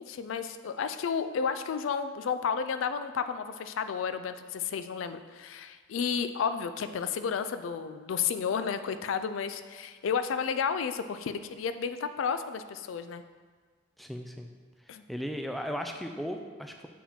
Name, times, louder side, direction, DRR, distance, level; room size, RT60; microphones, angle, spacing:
voice 1, 0.0-13.2 14.9-15.0, left 6 dB, 90° left, 10 dB, 0.4 m, -32 dB
voice 2, 14.0-14.5 15.1-16.9, equal, ahead, 3 dB, 0.3 m, -36 dB
7.3 x 4.7 x 3.6 m, 1.5 s
head